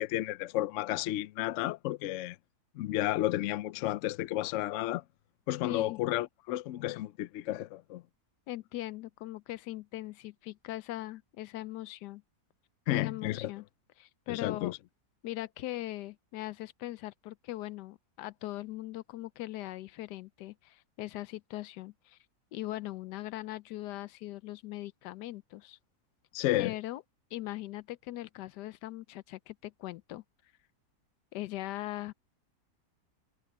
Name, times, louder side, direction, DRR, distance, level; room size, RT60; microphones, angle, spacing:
voice 1, 0.0-2.4 2.8-5.0 5.5-8.0 12.9-13.5 14.3-14.8 26.3-26.7, left 15 dB, 70° left, 0.7 m, -32 dB
voice 2, 5.6-6.0 8.5-12.2 12.9-13.6 14.0-14.7 15.2-22.2 22.5-25.8 26.6-27.0 27.3-30.2 31.3-32.1, left 16 dB, 85° left, 1.2 m, -40 dB
omnidirectional pair, 1.7 m